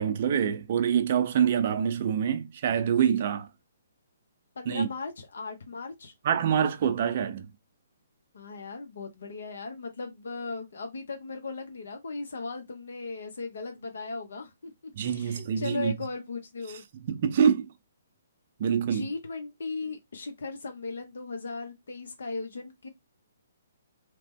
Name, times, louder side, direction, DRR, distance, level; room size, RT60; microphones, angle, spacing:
voice 1, 0.0-3.5 4.7-4.9 6.2-7.5 15.0-15.9 17.1-17.7 18.6-19.1, right 8 dB, 50° right, 0.5 m, -25 dB
voice 2, 4.6-6.1 8.3-16.8 18.8-22.9, left 3 dB, 75° left, 0.7 m, -37 dB
2.8 x 2.1 x 3.4 m
hypercardioid pair, 145°, 0 cm